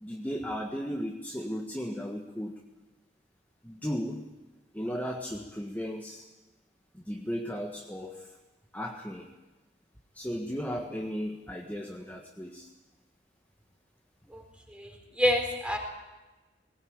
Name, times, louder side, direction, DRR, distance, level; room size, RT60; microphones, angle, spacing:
voice 1, 0.0-2.5 3.6-4.2 4.7-6.2 6.9-8.3 8.7-9.3 10.1-12.7, equal, 10° left, 1 dB, 1.6 m, -35 dB
voice 2, 14.7-15.8, left 1 dB, 5° right, 3 dB, 4.2 m, -28 dB
20.5 x 18.5 x 8.9 m, 1.1 s
head